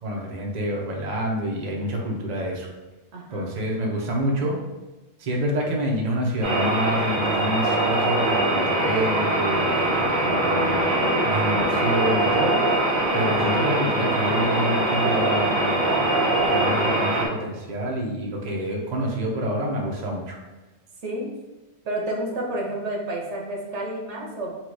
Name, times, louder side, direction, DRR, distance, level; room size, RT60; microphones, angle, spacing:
voice 1, 0.0-2.7 3.3-4.6 5.2-10.8 11.2-12.6 13.1-16.1 16.5-20.4, equal, 45° right, -1 dB, 0.7 m, -27 dB
voice 2, 3.1-3.5 13.2-13.6 16.5-17.0 21.0-21.4 21.8-24.6, right 1 dB, 80° right, -1 dB, 1.1 m, -31 dB
sound 1, 6.4-17.3, right 1 dB, 15° right, 1.4 m, -22 dB
4.5 x 2.4 x 4.6 m, 1.1 s
omnidirectional pair, 1.2 m